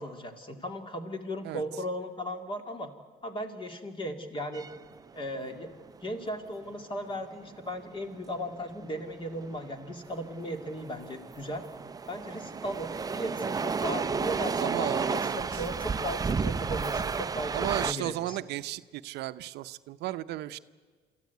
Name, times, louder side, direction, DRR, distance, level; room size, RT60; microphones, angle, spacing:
voice 1, 0.0-2.9 3.2-4.6 5.1-5.7 6.0-11.6 12.1-18.4, equal, 30° left, 6 dB, 2.4 m, -37 dB
sound 1, 4.5-17.9, right 5 dB, 20° right, 0.5 m, -33 dB
voice 2, 14.6-15.6 17.5-20.6, right 15 dB, 80° right, 13 dB, 0.7 m, -35 dB
26.5 x 14.0 x 9.3 m, 1.5 s
cardioid pair, 110°, 17 cm